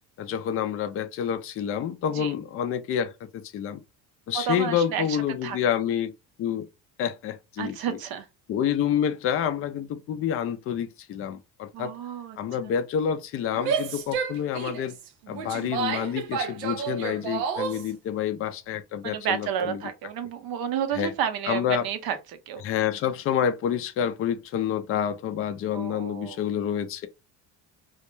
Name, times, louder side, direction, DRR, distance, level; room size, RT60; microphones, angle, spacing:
voice 1, 0.2-3.8 4.3-6.1 6.4-6.7 7.0-8.0 8.5-11.9 12.4-14.9 15.3-19.8 20.9-21.1 21.5-21.9 22.6-27.1, left 9 dB, 30° left, 0.3 m, -28 dB
voice 2, 4.3-5.2 5.4-5.6 7.6-8.3 11.7-12.4 19.0-22.6 25.7-26.4, right 8 dB, 50° right, 0.6 m, -31 dB
Female speech woman speaking / Yell, 13.5-17.9, right 6 dB, 85° right, 0.6 m, -30 dB
2.1 x 2.1 x 3.0 m
hypercardioid pair, 70°, 49 cm